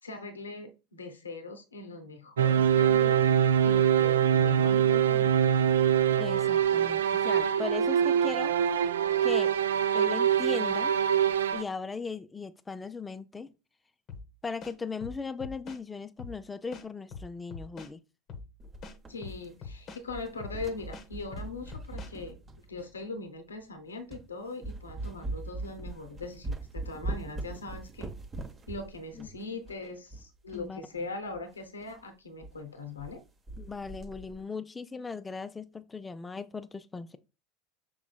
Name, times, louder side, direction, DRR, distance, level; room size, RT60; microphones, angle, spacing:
voice 1, 0.0-3.2 3.6-5.4 19.1-22.4 22.7-28.1 28.7-33.2, left 3 dB, 85° left, 0.6 m, -41 dB
sound 1, 2.4-11.6, right 9 dB, 75° right, 0.3 m, -24 dB
voice 2, 6.2-8.5 9.2-9.5 9.9-11.0 11.5-13.5 14.4-18.0 29.2-29.3 30.5-30.8 33.6-37.2, left 4 dB, 15° left, 0.4 m, -38 dB
sound 2, 14.1-14.3 14.6-15.8 16.2-16.4 16.7-17.9 18.3-18.5 18.8-20.0 20.4-20.6 20.9-22.1, left 4 dB, 40° left, 0.7 m, -43 dB
sound 3, 18.6-19.7 20.0-23.0 23.6-23.7 24.1-24.3 24.6-30.7 31.0-31.1 31.3-31.4 31.8-32.0 32.4-32.5 32.8-33.2 33.5-34.4, right 2 dB, 25° right, 0.8 m, -41 dB
6.0 x 3.8 x 2.3 m
figure-of-eight pair, 75°, 0 cm